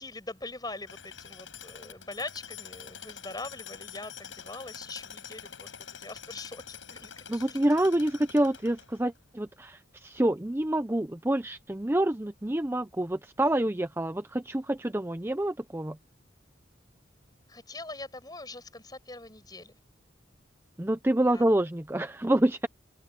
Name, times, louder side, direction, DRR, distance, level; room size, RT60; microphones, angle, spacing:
voice 1, 0.0-5.7 6.0-7.6 17.5-19.8 21.3-21.4, left 2 dB, 20° left, 6.7 m, -42 dB
Tools, 0.9-9.2, left 7 dB, 90° left, 8.0 m, -46 dB
voice 2, 7.3-16.0 20.8-22.7, right 1 dB, 10° right, 0.6 m, -27 dB
open air
head